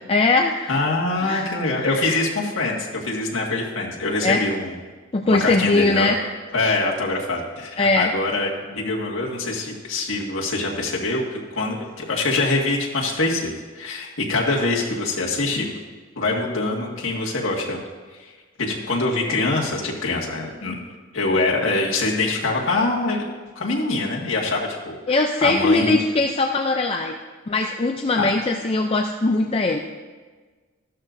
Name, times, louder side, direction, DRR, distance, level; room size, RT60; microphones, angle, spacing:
voice 1, 0.1-0.9 1.2-2.2 4.2-4.4 5.1-6.2 7.8-8.1 25.1-27.1 27.5-29.8, left 3 dB, 30° left, 4 dB, 0.4 m, -21 dB
voice 2, 0.7-4.7 5.3-6.1 6.5-15.8 16.2-17.8 18.2-18.3 18.6-20.8 21.1-23.2 23.6-25.9 28.2-28.3, left 2 dB, 80° left, -3 dB, 1.9 m, -24 dB
14.0 x 12.0 x 2.6 m, 1.4 s
head